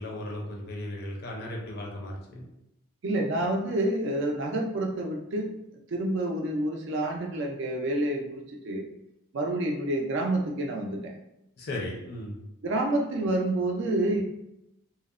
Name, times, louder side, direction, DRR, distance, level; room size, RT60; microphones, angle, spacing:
voice 1, 0.0-2.4 11.6-12.4, left 1 dB, 45° left, -1 dB, 0.4 m, -36 dB
voice 2, 3.0-5.5 5.9-8.9 9.3-11.1 12.6-14.2, right 1 dB, 55° right, 1 dB, 0.4 m, -28 dB
2.7 x 2.0 x 2.4 m, 0.84 s
head